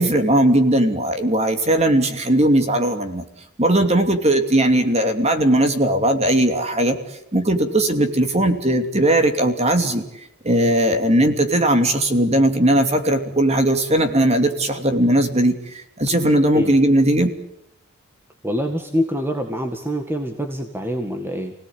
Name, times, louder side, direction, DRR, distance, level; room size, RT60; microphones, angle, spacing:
voice 1, 0.0-3.2 3.6-7.0 7.3-10.0 10.4-17.3, right 1 dB, 30° right, 6 dB, 2.8 m, -18 dB
voice 2, 18.4-21.5, equal, 10° right, 4 dB, 1.9 m, -25 dB
29.0 x 18.0 x 8.9 m, 0.81 s
head